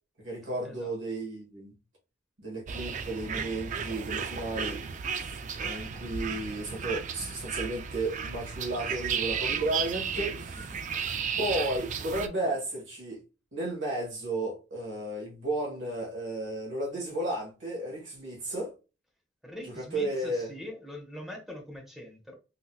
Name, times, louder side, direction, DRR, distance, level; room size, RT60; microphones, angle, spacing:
voice 1, 0.2-1.7 2.4-4.8 5.6-10.8 11.4-13.2 13.5-18.7 19.6-20.5, right 1 dB, 75° right, 1.8 m, -33 dB
sound 1, 2.7-12.3, right 6 dB, 40° right, 0.4 m, -34 dB
voice 2, 10.7-11.2 12.4-12.5 19.4-22.4, left 1 dB, ahead, 0.8 m, -43 dB
3.9 x 2.9 x 2.3 m
head